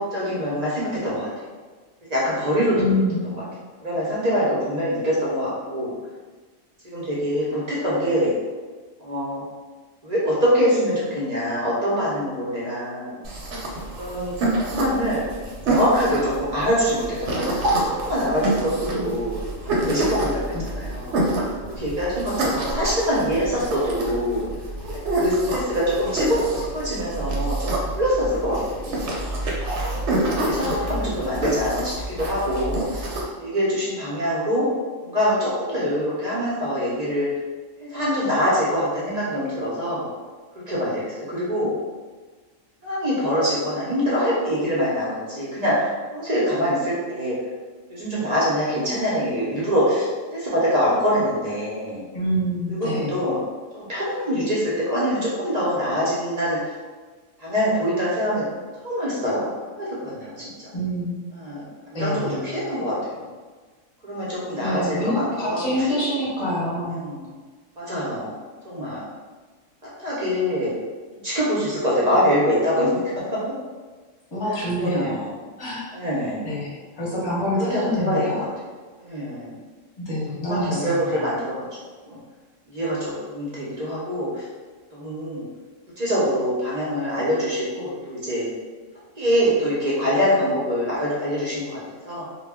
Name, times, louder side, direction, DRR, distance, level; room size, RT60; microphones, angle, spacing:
voice 1, 0.0-1.4 2.1-3.0 3.8-5.9 6.8-8.3 9.0-9.4 10.0-13.2 14.0-15.2 15.7-19.4 19.8-21.2 21.6-24.4 25.1-27.7 28.0-29.0 30.4-33.1 33.4-34.7 35.0-37.3 37.8-40.1 40.5-41.7 42.8-47.4 47.9-52.0 52.7-53.4 53.7-56.7 57.4-58.4 58.8-59.5 59.8-60.5 61.4-62.9 64.0-65.9 66.9-67.3 67.8-68.3 68.6-69.1 70.0-70.7 71.2-73.0 73.3-73.4 74.5-75.4 75.9-76.4 77.6-78.5 79.0-79.6 80.4-81.6 82.0-82.2 82.7-84.5 84.9-85.4 86.0-88.5 89.2-92.2, equal, 40° right, -7 dB, 0.6 m, -24 dB
voice 2, 2.7-3.3 18.9-19.2 20.5-20.6 52.1-53.2 60.7-61.2 61.9-62.5 64.6-67.0 74.3-75.2 75.6-75.9 76.4-78.4 80.0-81.2, left 1 dB, 25° left, -7 dB, 0.7 m, -26 dB
sound 1, 13.2-33.2, right 1 dB, 65° right, 0.9 m, -27 dB
2.1 x 2.1 x 3.4 m, 1.4 s
omnidirectional pair, 1.3 m